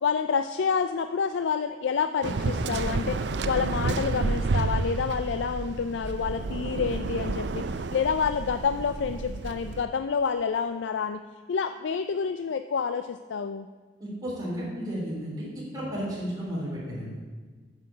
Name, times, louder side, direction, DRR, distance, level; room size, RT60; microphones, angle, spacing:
voice 1, 0.0-3.2 3.4-7.7 7.9-11.2 11.5-13.7, left 6 dB, 85° left, 9 dB, 0.4 m, -28 dB
Waves surf, 2.2-9.8, right 3 dB, 70° right, 0.5 m, -30 dB
voice 2, 14.0-15.5 15.7-17.2, equal, 20° right, -6 dB, 3.9 m, -33 dB
9.6 x 7.4 x 7.3 m, 1.4 s
head